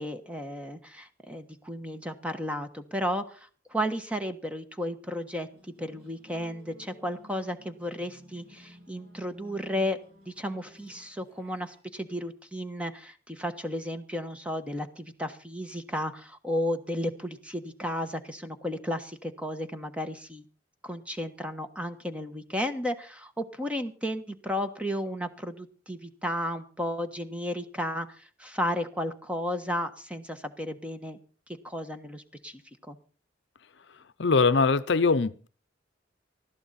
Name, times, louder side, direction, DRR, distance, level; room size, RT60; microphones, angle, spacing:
voice 1, 0.0-5.5 5.8-10.0 10.3-20.4 20.8-31.2 31.6-32.6 32.9-33.0, equal, 5° right, 1.3 m, -33 dB
sound 1, 5.5-11.8, equal, 60° right, 7.8 m, -54 dB
voice 2, 34.2-35.5, left 4 dB, 65° left, 0.7 m, -22 dB
19.5 x 13.5 x 4.2 m
head